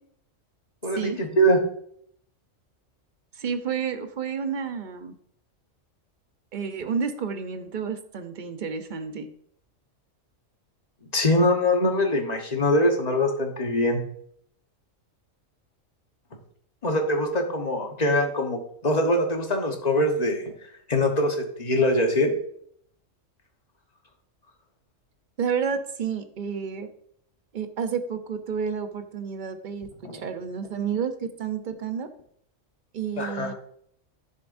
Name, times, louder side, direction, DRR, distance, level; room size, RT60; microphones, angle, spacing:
voice 1, 0.8-1.6 11.1-14.0 16.8-20.4 20.9-22.3 30.0-30.2 33.2-33.5, left 1 dB, 35° left, 3 dB, 1.3 m, -23 dB
voice 2, 3.4-5.1 6.5-9.3 25.4-26.9 27.5-32.1 32.9-33.5, right 6 dB, 45° right, 8 dB, 0.8 m, -30 dB
10.5 x 7.0 x 2.6 m, 0.65 s
omnidirectional pair, 1.3 m